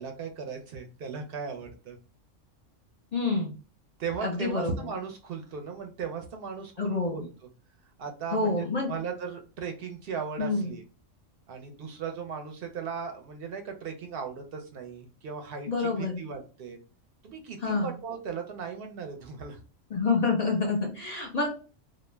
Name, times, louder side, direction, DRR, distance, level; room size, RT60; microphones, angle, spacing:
voice 1, 0.0-2.0 4.0-7.3 8.0-8.6 8.9-10.8 11.5-16.8 17.2-19.6, right 6 dB, 60° right, 4 dB, 0.7 m, -37 dB
voice 2, 3.1-3.5 4.2-4.9 6.8-7.3 8.3-8.9 10.4-10.7 15.7-16.2 17.6-17.9 19.9-21.5, left 3 dB, 40° left, 0 dB, 0.6 m, -27 dB
2.3 x 2.1 x 3.2 m, 0.35 s
omnidirectional pair, 1.3 m